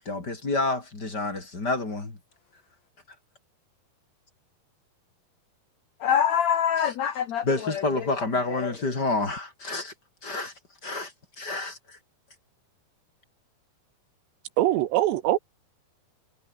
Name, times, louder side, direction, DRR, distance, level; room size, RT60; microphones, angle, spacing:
voice 1, 0.1-2.2 7.4-9.9 10.2-10.5 10.8-11.1 11.4-12.0, left 2 dB, 25° left, 4.6 m, -29 dB
voice 2, 6.0-8.7, left 9 dB, 70° left, 1.7 m, -26 dB
voice 3, 14.6-15.4, right 14 dB, 85° right, 3.5 m, -22 dB
omnidirectional pair, 4.8 m